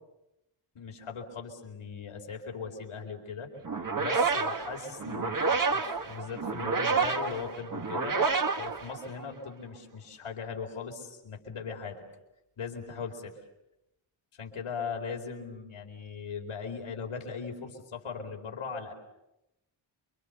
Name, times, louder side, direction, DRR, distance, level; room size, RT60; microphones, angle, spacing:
voice 1, 0.7-3.5 4.0-8.2 8.5-12.0 12.6-13.4 14.4-18.9, left 5 dB, 85° left, 2 dB, 4.6 m, -39 dB
sound 1, 3.6-9.5, right 4 dB, 40° right, 1.6 m, -29 dB
28.5 x 24.5 x 6.7 m, 0.91 s
cardioid pair, 70°, 50 cm